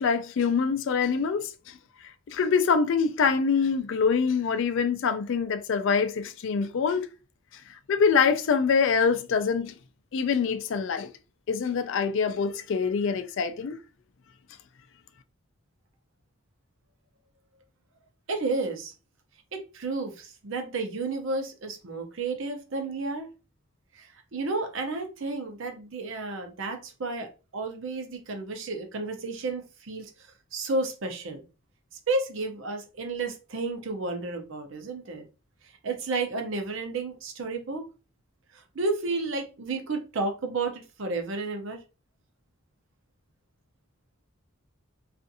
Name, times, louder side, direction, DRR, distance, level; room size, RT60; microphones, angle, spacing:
voice 1, 0.0-1.5 2.3-7.0 7.9-9.7 10.1-11.1 11.5-13.8, left 5 dB, 60° left, 0.3 m, -25 dB
voice 2, 18.3-18.9 19.5-23.3 23.9-30.1 30.5-31.4 32.1-35.2 35.8-37.8 38.5-41.8, right 3 dB, 70° right, 0.6 m, -32 dB
2.5 x 2.5 x 2.6 m
head